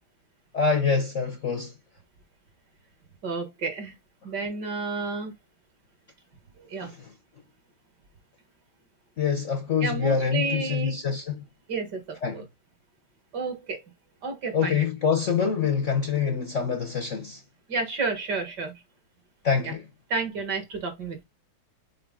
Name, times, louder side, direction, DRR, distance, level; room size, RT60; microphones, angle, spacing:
voice 1, 0.5-1.7 6.8-7.1 9.2-11.4 12.2-12.5 14.5-17.4 19.4-19.9, left 6 dB, 50° left, 0.9 m, -25 dB
voice 2, 3.2-3.9 4.2-5.3 6.7-6.9 9.8-11.0 11.7-12.4 13.3-13.8 14.2-14.8 17.7-18.7 19.6-19.7 20.1-21.2, right 3 dB, 55° right, 2.0 m, -31 dB
5.5 x 4.7 x 3.7 m
omnidirectional pair, 2.3 m